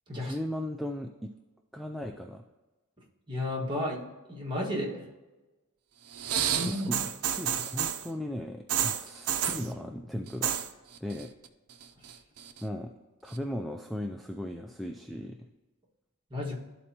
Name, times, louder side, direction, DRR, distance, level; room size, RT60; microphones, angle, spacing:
voice 1, 0.2-1.3 1.7-2.4 6.5-10.5 11.0-11.3 12.6-12.9 13.2-15.5, left 1 dB, ahead, 3 dB, 0.3 m, -37 dB
voice 2, 3.3-4.0 4.3-5.0 6.5-7.0 16.3-16.6, left 1 dB, 20° right, -4 dB, 1.7 m, -32 dB
sound 1, 6.1-8.1 8.7-9.7 10.3-10.7 11.0-11.5 11.8-12.6 13.3-13.4, right 9 dB, 70° right, 0.5 m, -30 dB
12.5 x 4.2 x 2.9 m, 1.1 s
head